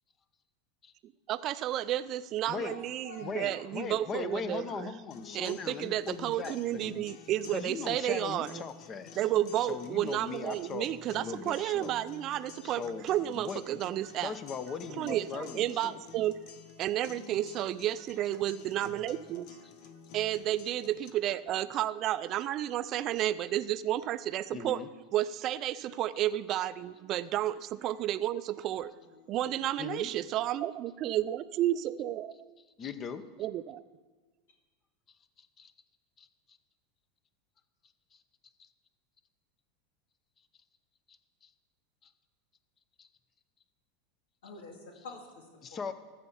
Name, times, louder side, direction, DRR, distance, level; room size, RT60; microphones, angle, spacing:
voice 1, 1.0-4.9 5.3-8.6 9.2-14.3 15.0-16.4 16.8-19.5 20.1-24.8 25.1-28.9 29.3-32.3 33.4-33.8, right 13 dB, 45° right, 14 dB, 0.4 m, -32 dB
voice 2, 2.5-3.6 28.9-29.6 44.4-45.5, left 3 dB, 85° left, 1 dB, 2.0 m, -48 dB
voice 3, 3.2-7.0 7.5-9.2 9.7-11.9 12.6-13.0 13.3-13.8 14.2-16.0 24.5-24.9 29.8-30.1 32.8-33.2 35.4-35.7 36.2-36.3 38.1-38.2 38.6-38.7 41.1-41.5 42.0-42.1 43.0-43.1 45.6-45.9, left 6 dB, 30° left, 11 dB, 0.9 m, -39 dB
sound 1, 5.1-21.1, left 7 dB, 60° left, 1.0 m, -51 dB
13.5 x 5.8 x 7.1 m, 1.4 s
supercardioid pair, 115°, 0 cm